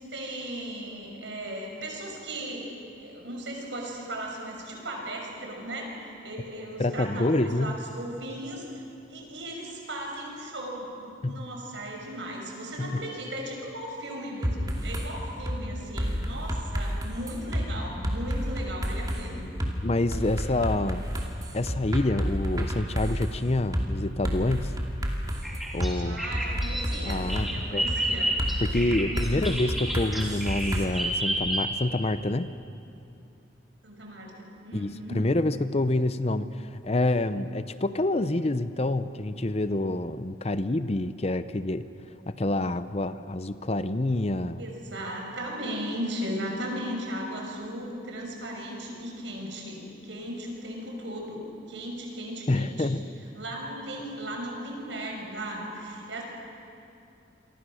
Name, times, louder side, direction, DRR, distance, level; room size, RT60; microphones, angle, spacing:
voice 1, 0.0-8.8 9.1-19.5 25.9-28.4 28.9-29.6 33.8-35.2 44.6-53.0 53.3-56.2, right 1 dB, 75° right, 0 dB, 6.0 m, -37 dB
voice 2, 6.8-7.7 11.2-11.5 12.8-13.0 19.8-21.1 21.5-24.7 25.7-26.2 27.1-27.9 28.6-32.5 34.7-41.9 42.3-44.6 52.5-53.0, left 2 dB, 35° left, 12 dB, 0.7 m, -27 dB
sound 1, 14.4-15.1 15.5-15.6 16.0-17.7 18.0-19.2 19.6-19.7 20.1-23.3 23.7-23.9 24.2-25.9 26.3-27.5 27.9-28.0 28.4-30.8, equal, 20° right, 2.5 m, -30 dB
Bird vocalization bird call bird song, 25.4-32.0, right 1 dB, ahead, 3.2 m, -30 dB
28.0 x 24.0 x 6.4 m, 2.7 s
head